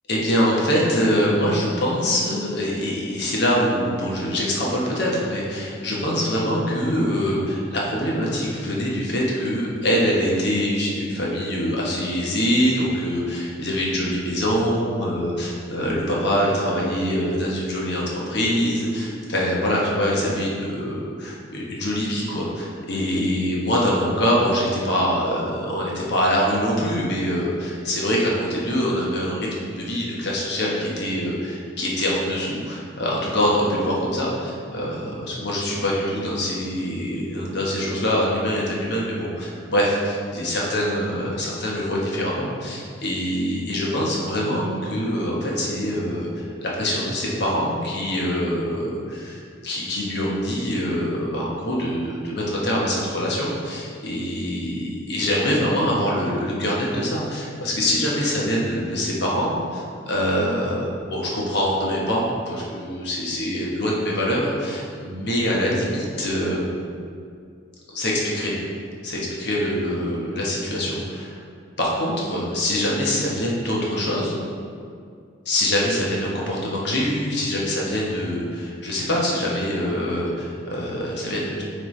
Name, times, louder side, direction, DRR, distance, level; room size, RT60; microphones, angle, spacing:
voice 1, 0.1-66.9 67.9-68.5 69.0-71.4 71.8-74.4 75.4-81.6, equal, 55° left, -4 dB, 1.1 m, -24 dB
9.3 x 3.3 x 3.2 m, 2.3 s
head